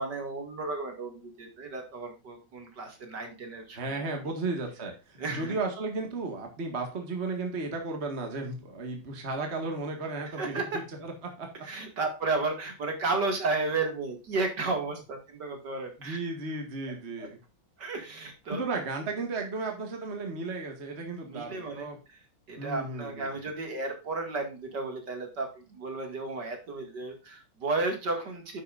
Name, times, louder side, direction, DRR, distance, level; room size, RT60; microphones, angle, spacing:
voice 1, 0.0-4.3 5.2-5.6 10.3-10.8 11.6-16.2 17.2-17.3 17.8-18.6 21.2-22.2 22.5-28.6, right 3 dB, 55° right, 3 dB, 2.8 m, -33 dB
voice 2, 3.8-10.6 11.0-11.1 11.4-11.5 16.0-17.4 18.5-22.0 22.6-23.3, right 3 dB, 35° right, 3 dB, 2.0 m, -34 dB
10.5 x 8.4 x 2.5 m, 0.30 s
omnidirectional pair, 2.2 m